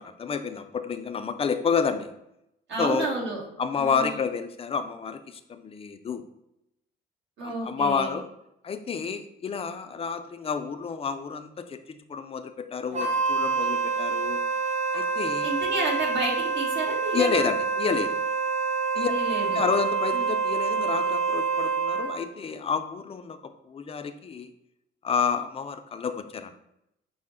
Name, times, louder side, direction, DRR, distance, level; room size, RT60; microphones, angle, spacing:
voice 1, 0.0-2.1 2.8-3.1 3.6-6.2 7.4-8.3 8.6-14.4 14.9-15.5 17.1-18.2 18.9-19.1 19.5-24.5 25.0-26.5, left 6 dB, 30° left, 9 dB, 0.4 m, -29 dB
voice 2, 2.7-3.4 3.8-4.2 7.4-8.1 15.4-17.5 19.0-19.6 20.1-20.2, right 2 dB, 70° right, -3 dB, 1.4 m, -31 dB
Wind instrument woodwind instrument, 12.9-22.2, right 4 dB, 35° right, 0.7 m, -27 dB
5.4 x 2.1 x 3.7 m, 0.82 s
cardioid pair, 90°, 20 cm